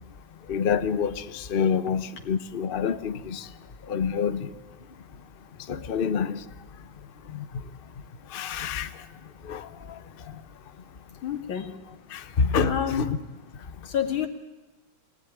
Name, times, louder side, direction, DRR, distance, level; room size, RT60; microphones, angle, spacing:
voice 1, 0.5-3.5 3.9-4.5 5.7-6.4 7.3-7.4 8.3-8.9 9.4-9.7 12.1-13.1, left 6 dB, 40° left, 0.8 m, -27 dB
voice 2, 11.2-11.8 12.2-12.3 12.6-13.0 13.8-14.3, left 9 dB, 85° left, 2.8 m, -28 dB
24.0 x 18.0 x 10.0 m
omnidirectional pair, 2.2 m